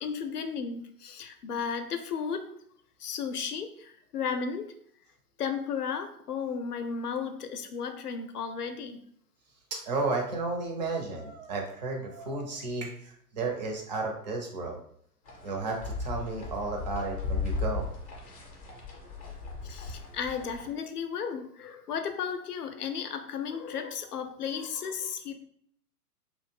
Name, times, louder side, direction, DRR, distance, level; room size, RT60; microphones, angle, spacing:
voice 1, 0.0-2.5 3.0-4.7 5.4-9.0 19.6-25.3, left 6 dB, 70° left, 7 dB, 0.5 m, -34 dB
voice 2, 9.7-14.8 15.4-17.9, right 3 dB, 30° right, 1 dB, 0.4 m, -33 dB
sound 1, 15.3-20.7, left 4 dB, 25° left, 0.5 m, -36 dB
2.5 x 2.0 x 3.3 m, 0.64 s
figure-of-eight pair, 110°, 47 cm